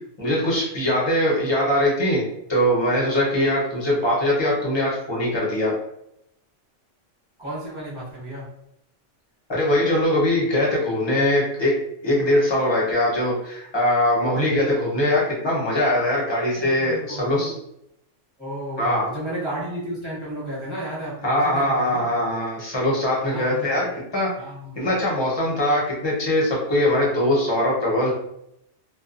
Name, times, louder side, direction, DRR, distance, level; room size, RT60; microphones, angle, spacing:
voice 1, 0.2-2.2 2.5-5.7 9.5-11.7 12.0-17.6 18.8-19.1 21.2-24.3 24.8-28.1, left 1 dB, 25° left, -5 dB, 0.7 m, -21 dB
voice 2, 7.4-8.5 16.6-17.6 18.4-22.1 23.2-23.7 24.4-24.9, right 1 dB, 25° right, -9 dB, 1.1 m, -33 dB
2.4 x 2.2 x 2.5 m, 0.78 s
omnidirectional pair, 1.3 m